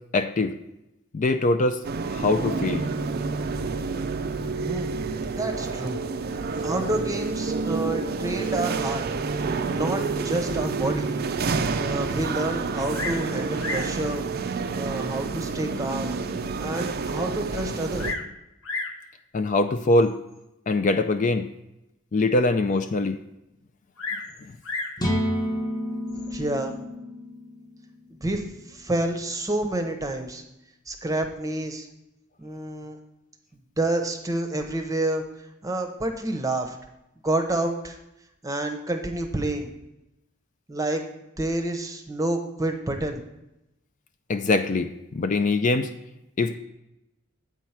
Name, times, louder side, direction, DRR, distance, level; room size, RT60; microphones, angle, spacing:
voice 1, 0.1-0.5 1.1-1.8 2.1-2.9 19.3-20.2 20.7-21.5 22.1-23.2 44.3-45.9 46.4-46.6, left 2 dB, 40° left, 9 dB, 0.4 m, -23 dB
sound 1, 1.8-18.1, right 4 dB, 45° right, 0.4 m, -29 dB
voice 2, 4.7-5.0 5.4-6.0 6.3-9.0 9.7-11.1 11.7-14.2 14.8-16.1 16.6-18.2 26.1-26.7 28.2-30.4 30.9-31.9 32.4-33.0 33.8-35.2 35.6-36.8 37.2-38.0 38.4-39.7 40.7-41.0 41.4-43.2, right 2 dB, 15° right, 5 dB, 0.8 m, -29 dB
Bird vocalization bird call bird song, 12.9-13.3 13.6-14.0 14.8-14.9 15.5-15.6 16.1-16.2 16.4-16.5 17.6-18.3 18.6-19.0 20.0-20.3 24.0-25.0 26.1-26.5, left 3 dB, 75° left, 1.0 m, -33 dB
sound 2, 25.0-28.8, equal, 20° left, 0.8 m, -30 dB
8.2 x 4.6 x 5.6 m, 0.90 s
head